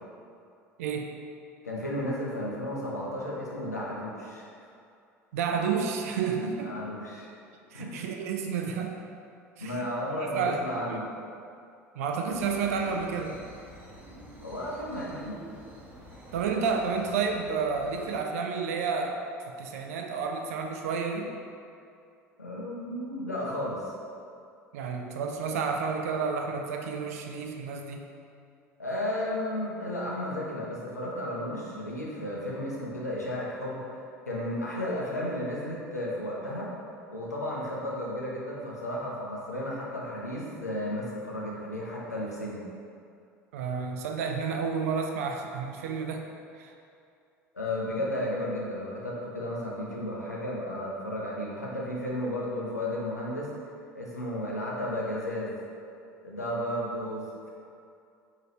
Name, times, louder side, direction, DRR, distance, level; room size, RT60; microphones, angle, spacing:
voice 1, 0.8-1.1 5.3-6.7 7.7-9.0 9.6-9.9 10.3-10.6 10.9-11.0 12.0-13.4 16.3-19.2 19.5-21.3 24.7-28.0 43.5-46.3 46.6-46.7, right 5 dB, 65° right, 3 dB, 0.4 m, -30 dB
voice 2, 1.6-4.5 6.6-7.3 7.7-8.0 9.6-11.1 14.4-15.4 22.4-23.9 28.8-33.8 34.3-36.7 37.1-42.6 47.5-53.5 53.9-55.6 56.2-57.5, left 1 dB, 90° left, -4 dB, 0.6 m, -33 dB
sound 1, 12.3-18.1, equal, 20° right, 0.9 m, -48 dB
4.6 x 2.9 x 2.9 m, 2.5 s
figure-of-eight pair, 70°, 8 cm